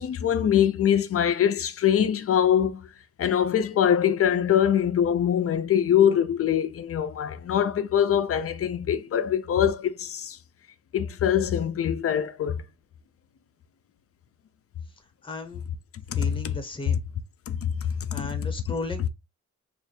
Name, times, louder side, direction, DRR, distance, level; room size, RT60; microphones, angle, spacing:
voice 1, 0.0-2.9 3.2-10.4 10.9-12.6 16.1-16.3 17.5-17.7 18.0-18.4, left 9 dB, 50° left, 0.5 m, -23 dB
voice 2, 15.2-15.6 16.1-17.0 18.1-19.1, left 2 dB, 15° left, 0.9 m, -35 dB
3.3 x 2.5 x 4.2 m
wide cardioid pair, 125°, 30 cm